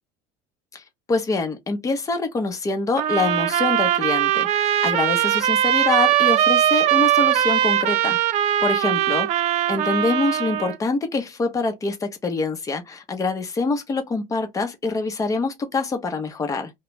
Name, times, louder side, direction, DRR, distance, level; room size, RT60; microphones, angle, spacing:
voice 1, 0.7-8.2 8.6-16.7, left 3 dB, 20° left, 0.8 m, -25 dB
sound 1, 3.0-10.7, right 11 dB, 55° right, 0.4 m, -20 dB
2.4 x 2.2 x 3.1 m
cardioid pair, 115°, 14 cm